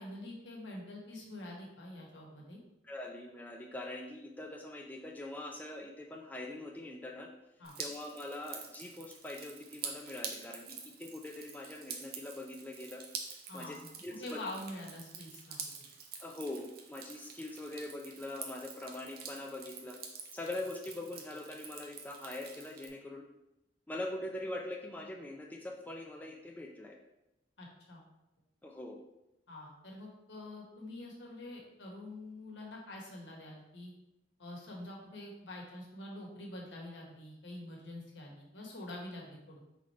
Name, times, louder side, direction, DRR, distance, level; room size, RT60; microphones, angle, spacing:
voice 1, 0.0-2.6 7.6-7.7 13.5-13.8 14.2-15.6 27.6-28.0 29.5-33.9 34.4-39.7, left 1 dB, 80° left, -2 dB, 1.2 m, -46 dB
voice 2, 2.8-7.3 7.8-13.1 13.5-14.4 16.2-20.0 20.3-23.3 23.9-27.0 28.6-29.0, left 1 dB, 10° left, 1 dB, 0.4 m, -43 dB
Drip, 7.6-22.9, right 6 dB, 55° right, 0.6 m, -47 dB
3.9 x 3.2 x 4.1 m, 0.91 s
head